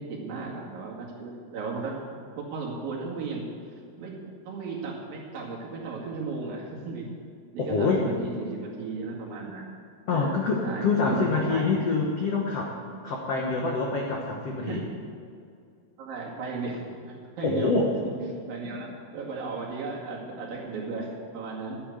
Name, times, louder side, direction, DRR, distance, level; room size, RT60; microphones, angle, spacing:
voice 1, 0.0-2.0 2.4-3.5 4.0-4.2 4.5-7.1 7.5-9.7 10.1-11.7 14.7-14.8 16.0-17.7 18.5-21.8, right 4 dB, 60° right, -3 dB, 3.8 m, -35 dB
voice 2, 7.6-8.1 10.1-12.7 13.0-14.8 17.4-17.9, left 4 dB, 75° left, 0 dB, 1.4 m, -26 dB
12.5 x 9.5 x 8.6 m, 2.3 s
omnidirectional pair, 4.7 m